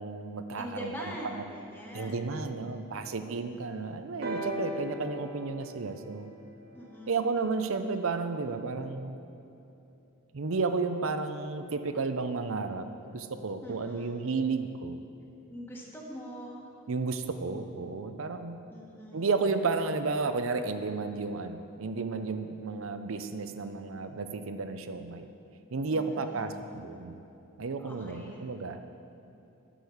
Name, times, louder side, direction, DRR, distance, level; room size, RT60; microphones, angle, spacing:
voice 1, 0.0-1.4 1.9-6.3 7.1-9.2 10.3-12.9 13.1-15.0 16.9-18.6 19.1-25.3 25.7-27.2 27.6-28.8, right 4 dB, 70° right, 9 dB, 0.6 m, -32 dB
voice 2, 0.6-2.7 6.7-7.3 13.6-14.2 15.5-16.6 18.7-19.3 25.9-26.5 27.8-28.4, equal, 10° left, -3 dB, 1.3 m, -43 dB
sound 1, 4.2-8.0 9.0-9.1, equal, 50° right, 1.1 m, -40 dB
10.0 x 6.5 x 7.0 m, 2.8 s
head